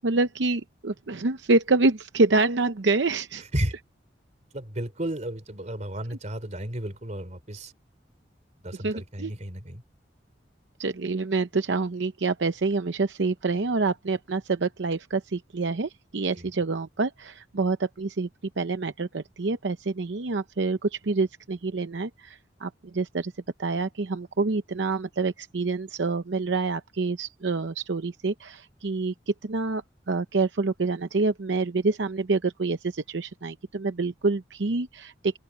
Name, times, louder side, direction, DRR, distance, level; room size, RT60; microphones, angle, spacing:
voice 1, 0.0-3.4 8.8-9.3 10.8-18.3 18.6-23.3 23.6-35.4, right 3 dB, 75° right, 0.7 m, -27 dB
voice 2, 4.5-7.7 8.6-9.8 16.4-16.5, right 1 dB, 40° right, 3.7 m, -33 dB
open air
head